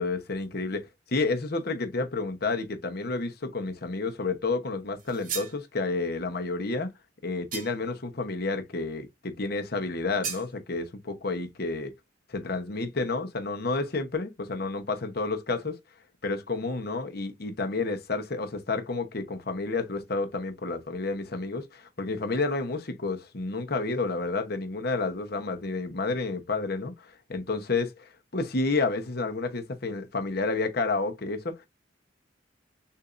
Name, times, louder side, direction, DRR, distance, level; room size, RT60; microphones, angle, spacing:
voice 1, 0.0-6.9 7.2-11.9 12.3-15.8 16.2-31.7, left 3 dB, 55° left, 1.0 m, -30 dB
sound 1, 5.0-5.6 7.5-8.0 10.2-10.5, right 6 dB, 45° right, 1.5 m, -36 dB
6.7 x 2.7 x 2.5 m
head